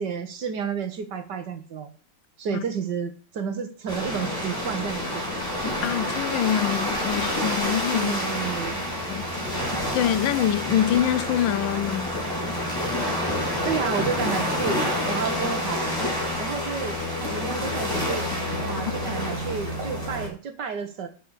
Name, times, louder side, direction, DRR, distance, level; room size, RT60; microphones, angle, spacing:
voice 1, 0.0-1.9 2.4-5.2 7.9-8.8 13.6-16.0 16.4-18.3 18.6-21.1, right 6 dB, 65° right, 1.8 m, -31 dB
sound 1, 3.9-20.3, left 1 dB, 10° left, 3.8 m, -28 dB
voice 2, 5.8-8.1 9.1-9.2 9.9-12.1, left 11 dB, 80° left, 1.4 m, -25 dB
11.0 x 4.9 x 8.1 m
omnidirectional pair, 2.0 m